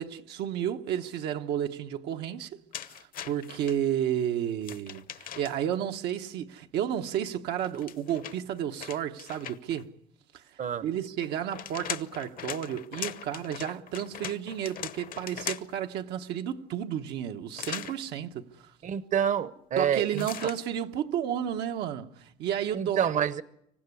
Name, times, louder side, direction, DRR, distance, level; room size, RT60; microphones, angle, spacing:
voice 1, 0.0-2.6 2.9-3.0 3.2-9.9 10.3-10.4 10.8-18.5 19.8-23.1, right 10 dB, 80° right, 1.0 m, -32 dB
sound 1, 2.7-3.8 4.6-5.8 7.6-9.8 11.2-15.9 17.6-18.0 20.1-20.6, left 9 dB, 55° left, 1.0 m, -40 dB
voice 2, 18.8-20.2 22.7-23.4, right 8 dB, 50° right, 0.9 m, -27 dB
25.5 x 15.5 x 9.7 m
cardioid pair, 110°, 17 cm